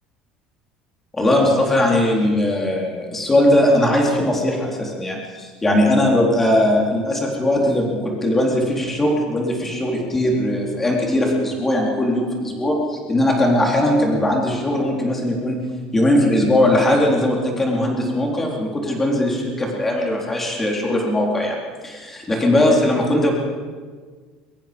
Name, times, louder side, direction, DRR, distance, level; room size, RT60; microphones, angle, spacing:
voice 1, 1.2-15.6 15.9-21.6 21.8-22.0 22.3-23.3, left 1 dB, 10° left, -1 dB, 3.9 m, -19 dB
23.5 x 21.0 x 5.3 m, 1.5 s
cardioid pair, 165°, 2 cm